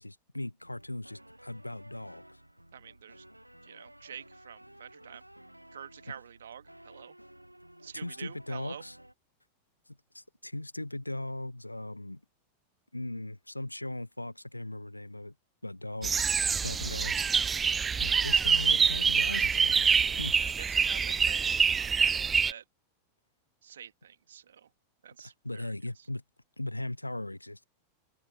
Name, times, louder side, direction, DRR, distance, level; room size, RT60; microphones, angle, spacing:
voice 1, 0.0-2.4 7.9-9.0 10.1-12.2 12.9-15.3 15.6-16.3 16.6-17.3 18.0-19.9 20.2-20.4 25.2-26.2 26.6-27.6, left 1 dB, 85° left, 0.9 m, -38 dB
sound 1, 0.6-9.1, right 1 dB, 90° right, 1.1 m, -54 dB
voice 2, 2.7-3.2 3.6-5.3 5.7-7.2 7.8-8.8 20.1-22.6 23.6-24.7 25.0-26.1, right 8 dB, 65° right, 2.2 m, -48 dB
sound 2, 16.0-22.5, right 6 dB, 20° right, 0.3 m, -26 dB
open air
figure-of-eight pair, 90°, 0 cm